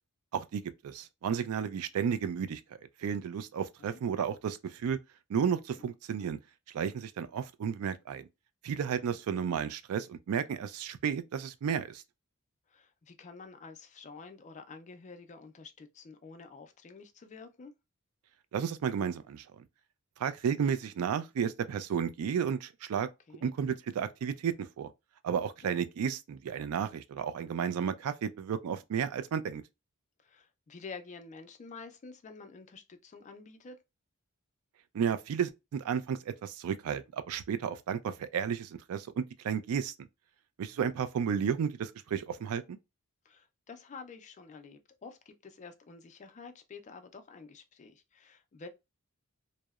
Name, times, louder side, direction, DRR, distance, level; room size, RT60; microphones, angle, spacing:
voice 1, 0.3-2.6 3.0-5.0 5.3-6.4 6.7-8.3 8.6-12.0 18.5-19.4 20.2-23.1 23.4-24.9 25.2-29.6 34.9-40.1 40.6-42.8, right 7 dB, 70° right, 0.3 m, -32 dB
voice 2, 12.7-17.7 23.3-23.5 25.3-25.7 29.0-29.1 30.2-33.8 43.3-48.7, left 4 dB, 35° left, 0.4 m, -49 dB
2.8 x 2.0 x 2.2 m
head